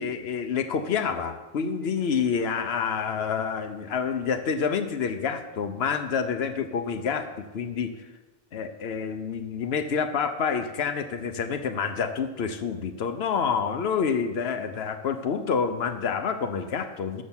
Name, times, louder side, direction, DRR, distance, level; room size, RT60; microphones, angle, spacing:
voice 1, 0.0-7.9 8.5-17.2, left 6 dB, 75° left, 8 dB, 1.0 m, -28 dB
7.2 x 6.3 x 7.1 m, 1.1 s
omnidirectional pair, 1.1 m